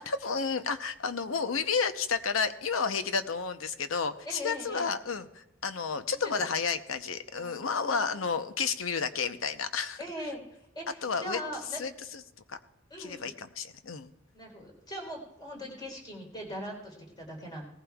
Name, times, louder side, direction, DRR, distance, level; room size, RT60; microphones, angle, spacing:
voice 1, 0.0-10.0 11.0-11.4 11.7-12.2 12.5-12.6 13.0-14.1, left 5 dB, 90° left, 10 dB, 0.8 m, -31 dB
voice 2, 4.3-4.9 6.2-6.6 7.3-8.2 10.0-11.8 12.9-13.3 14.3-17.6, equal, 20° left, 0 dB, 3.7 m, -41 dB
19.5 x 15.0 x 2.3 m, 0.82 s
head